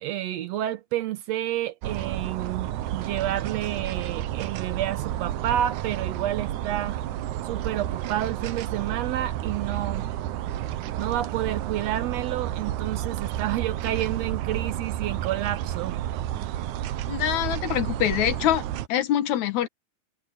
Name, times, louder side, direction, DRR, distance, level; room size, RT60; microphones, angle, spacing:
voice 1, 0.0-7.0 7.4-10.1 11.0-16.0, right 12 dB, 75° right, 1.8 m, -30 dB
sound 1, 1.8-18.9, right 12 dB, 90° right, 2.3 m, -31 dB
voice 2, 17.1-18.6 18.9-19.7, left 11 dB, 75° left, 2.5 m, -24 dB
omnidirectional pair, 3.4 m